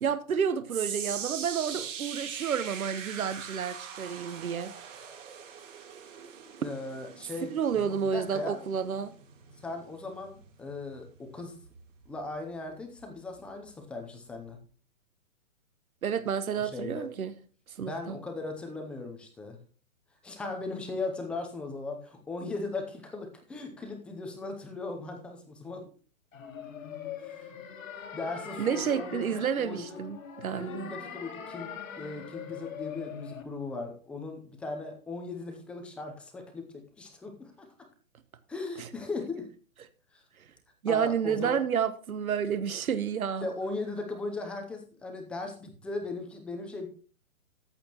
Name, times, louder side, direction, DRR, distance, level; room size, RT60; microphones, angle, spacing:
voice 1, 0.0-4.7 7.5-9.1 16.0-17.3 17.8-18.2 28.6-30.9 40.8-43.5, right 7 dB, 80° right, 1.2 m, -30 dB
sound 1, 0.7-13.0 13.3-13.7 14.3-14.4, right 7 dB, 60° right, 3.4 m, -42 dB
voice 2, 6.6-8.6 9.6-11.6 12.1-14.6 16.5-17.1 17.8-19.6 20.2-25.8 27.2-27.5 28.1-30.0 30.5-37.7 38.5-39.5 40.1-40.2 40.9-41.6 43.4-46.9, left 3 dB, 5° left, 0.6 m, -38 dB
sound 2, 26.3-33.4, left 7 dB, 65° left, 2.1 m, -42 dB
14.0 x 8.5 x 3.0 m
hypercardioid pair, 150°, 42 cm